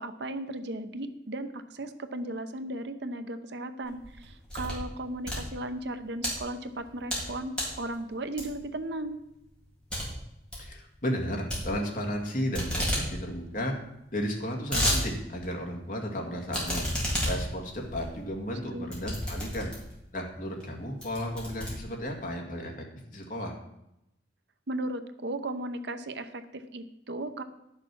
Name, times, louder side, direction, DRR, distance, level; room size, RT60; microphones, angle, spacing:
voice 1, 0.0-9.2 18.7-18.9 24.7-27.4, right 1 dB, 65° right, 9 dB, 0.8 m, -36 dB
sound 1, 3.9-4.9 5.2-6.3 6.8-7.3 7.5-7.8 8.4-8.7 9.1-9.2 9.5-9.6 9.9-10.1 10.3-10.7 11.5-12.2 12.5-13.1 13.4-13.5 13.6-13.7 14.3-15.0 15.4-15.5 16.5-20.0 20.6-20.7 21.0-22.3, equal, 5° left, 3.4 m, -31 dB
voice 2, 10.6-13.7 14.1-16.9 17.2-19.7 20.1-23.6, equal, 45° left, 1 dB, 2.1 m, -34 dB
11.0 x 6.7 x 6.1 m, 0.86 s
head